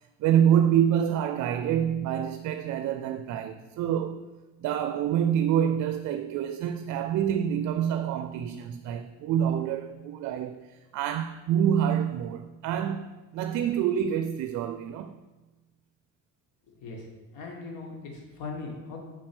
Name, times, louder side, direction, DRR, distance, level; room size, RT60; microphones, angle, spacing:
voice 1, 0.2-4.2 4.6-15.2, right 9 dB, 60° right, 0.4 m, -27 dB
voice 2, 16.7-17.1 17.3-19.0, left 3 dB, 80° left, 1.6 m, -39 dB
4.7 x 4.4 x 5.9 m
cardioid pair, 95°, 32 cm